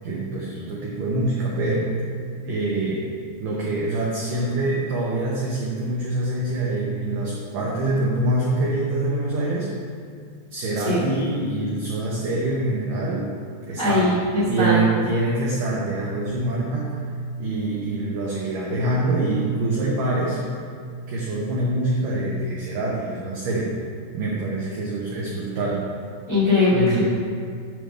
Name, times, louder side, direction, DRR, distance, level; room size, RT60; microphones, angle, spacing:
voice 1, 0.0-1.9 2.4-3.1 3.4-9.7 10.5-13.3 13.7-14.1 14.5-17.0 17.4-20.4 21.1-23.8 24.1-25.8 26.7-27.0, right 2 dB, 85° right, -4 dB, 1.9 m, -25 dB
voice 2, 13.8-14.8 26.3-27.0, left 2 dB, 45° left, -11 dB, 1.1 m, -20 dB
9.1 x 3.5 x 6.3 m, 2.1 s
omnidirectional pair, 5.1 m